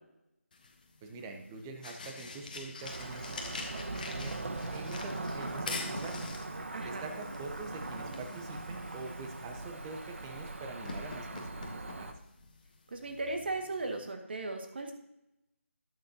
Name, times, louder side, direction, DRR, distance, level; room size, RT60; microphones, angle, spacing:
sound 1, 0.5-14.1, left 3 dB, 35° left, 1.2 m, -46 dB
voice 1, 1.0-4.4 4.7-6.3 6.8-12.1, right 3 dB, 10° right, 4 dB, 0.8 m, -45 dB
Cricket / Motor vehicle (road), 2.8-12.1, right 2 dB, 60° right, 1.2 m, -40 dB
voice 2, 6.7-7.1 12.9-14.9, right 2 dB, 45° right, 4 dB, 1.8 m, -37 dB
18.5 x 6.5 x 2.8 m, 0.88 s
figure-of-eight pair, 165°, 8 cm